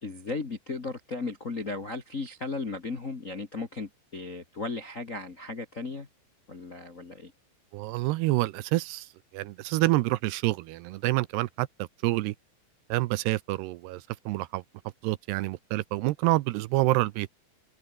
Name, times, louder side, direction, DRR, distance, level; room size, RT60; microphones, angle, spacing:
voice 1, 0.0-6.1 6.5-7.3, left 3 dB, 70° left, 0.7 m, -36 dB
voice 2, 7.7-9.1 9.3-11.7 12.0-12.3 12.9-14.6 15.0-17.3, right 18 dB, 85° right, 2.7 m, -27 dB
omnidirectional pair, 4.9 m